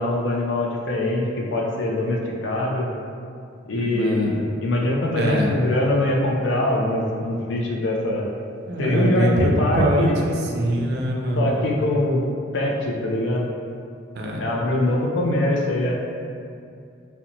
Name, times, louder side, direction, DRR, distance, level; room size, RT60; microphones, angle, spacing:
voice 1, 0.0-2.9 3.7-8.3 8.8-10.2 11.4-12.2 12.5-13.5 14.4-15.9, left 1 dB, 75° left, -1 dB, 0.4 m, -23 dB
voice 2, 3.7-4.4 5.2-5.5 8.7-11.7 14.1-14.4, equal, 55° right, -1 dB, 0.4 m, -23 dB
2.6 x 2.1 x 2.8 m, 2.4 s
head